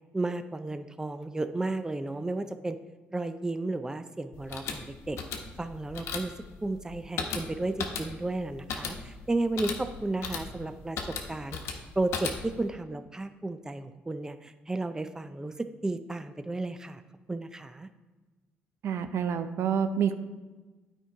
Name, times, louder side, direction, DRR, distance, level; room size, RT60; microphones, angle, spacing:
voice 1, 0.1-2.8 3.1-5.2 5.6-6.3 6.6-11.0 11.3-17.0 17.3-17.9, right 2 dB, 15° right, 9 dB, 0.5 m, -33 dB
sound 1, 4.3-12.7, left 5 dB, 80° left, 1.0 m, -37 dB
voice 2, 18.8-20.1, right 7 dB, 70° right, 10 dB, 0.6 m, -28 dB
8.9 x 4.5 x 4.7 m, 1.2 s
supercardioid pair, 70°, 5 cm